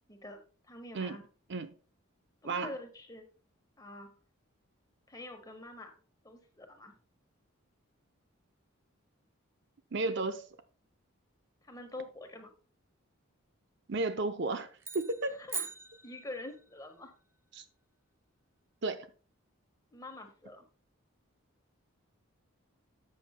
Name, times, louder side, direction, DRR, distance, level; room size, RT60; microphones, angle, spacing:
voice 1, 0.1-1.2 2.4-3.2 3.8-4.1 5.1-5.9 6.2-6.9 11.6-12.5 15.3-15.7 16.0-17.1 19.9-20.6, left 2 dB, 15° left, 1.4 m, -46 dB
voice 2, 9.9-10.4 13.9-14.7 14.9-15.3 17.5-17.6 18.8-19.1, right 3 dB, 55° right, 0.6 m, -33 dB
sound 1, 14.8-16.7, right 5 dB, 10° right, 0.6 m, -41 dB
11.5 x 7.8 x 2.2 m
head